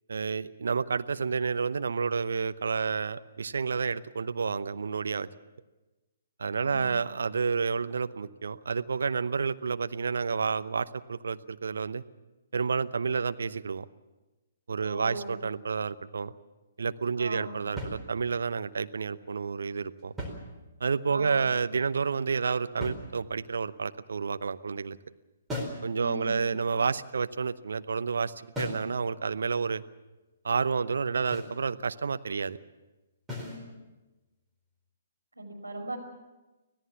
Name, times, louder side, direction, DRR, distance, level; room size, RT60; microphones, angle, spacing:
voice 1, 0.1-5.3 6.4-12.0 12.5-13.9 14.7-16.3 16.8-20.1 20.8-25.0 25.8-29.8 30.4-32.6, right 5 dB, 65° right, 12 dB, 0.8 m, -30 dB
voice 2, 6.6-6.9 14.8-15.4 17.2-17.6 21.1-21.5 26.0-26.4 33.5-33.7 35.4-36.0, right 1 dB, 85° right, 2 dB, 5.7 m, -39 dB
sound 1, 17.8-18.5 20.0-21.0 22.8-23.6 25.5-25.9 28.6-29.0 31.3-31.6 33.3-33.7, left 1 dB, 10° right, 4.2 m, -38 dB
25.5 x 17.0 x 7.2 m, 1.1 s
figure-of-eight pair, 125°, 0 cm